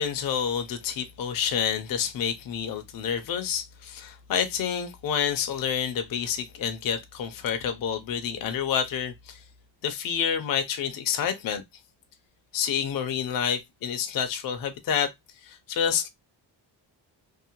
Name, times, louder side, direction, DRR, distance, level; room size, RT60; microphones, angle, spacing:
voice 1, 0.0-9.4 9.8-11.6 12.5-15.1 15.4-16.1, left 8 dB, 50° left, 0.5 m, -28 dB
2.7 x 2.0 x 2.7 m
wide cardioid pair, 175°, 45 cm